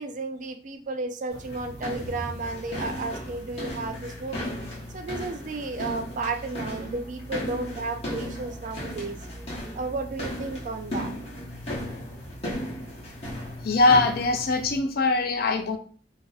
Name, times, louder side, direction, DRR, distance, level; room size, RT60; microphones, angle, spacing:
voice 1, 0.0-4.5 4.9-9.2 9.7-11.1, right 3 dB, 40° right, 6 dB, 0.3 m, -33 dB
sound 1, 1.3-14.8, equal, 35° left, 1.2 m, -36 dB
voice 2, 13.6-15.8, left 3 dB, 55° left, 6 dB, 0.4 m, -22 dB
2.5 x 2.4 x 4.0 m, 0.42 s
head